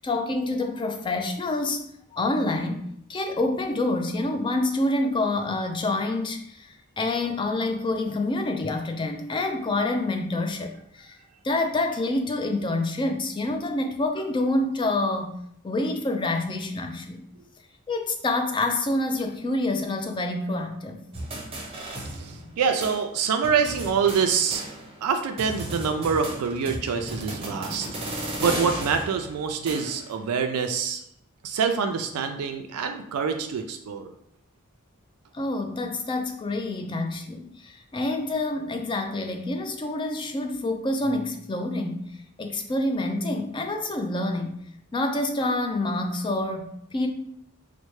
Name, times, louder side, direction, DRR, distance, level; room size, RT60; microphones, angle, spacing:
voice 1, 0.0-1.8 2.1-11.2 11.4-15.4 15.6-17.2 17.9-21.0 35.3-44.6 44.9-47.1, left 2 dB, 20° left, 5 dB, 0.3 m, -27 dB
sound 1, 21.1-22.6 22.8-23.0 23.4-25.1 25.4-30.2, right 1 dB, 25° right, 0.7 m, -35 dB
voice 2, 22.1-24.6 25.0-27.9 28.4-31.0 31.4-34.1, right 6 dB, 90° right, 6 dB, 0.3 m, -26 dB
4.2 x 2.1 x 3.1 m, 0.72 s
head